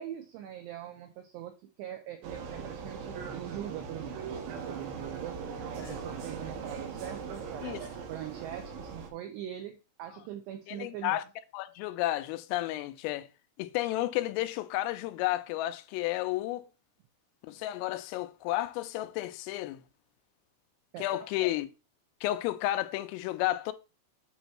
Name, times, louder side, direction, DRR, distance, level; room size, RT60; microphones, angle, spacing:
voice 1, 0.0-5.4 5.7-11.2 20.9-21.3, right 11 dB, 90° right, 2.4 m, -42 dB
Vehicle, 2.2-9.1, right 6 dB, 70° right, 2.8 m, -40 dB
voice 2, 10.7-11.2 11.5-13.3 13.6-16.7 17.4-19.8 21.0-21.7 22.2-23.7, left 16 dB, 85° left, 3.3 m, -32 dB
9.0 x 3.0 x 5.9 m
omnidirectional pair, 5.9 m